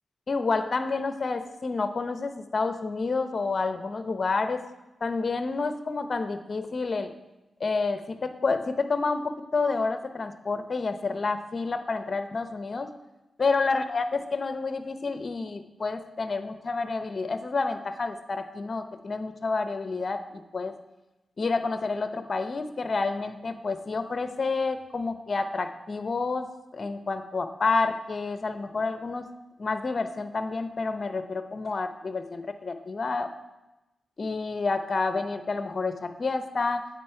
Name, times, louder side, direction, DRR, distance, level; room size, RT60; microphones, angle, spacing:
voice 1, 0.3-4.6 5.0-7.1 7.6-12.9 13.4-20.7 21.4-26.5 26.7-29.3 29.6-33.3 34.2-36.9, left 4 dB, 50° left, 9 dB, 0.7 m, -29 dB
9.2 x 8.3 x 4.5 m, 1.0 s
cardioid pair, 85°, 0 cm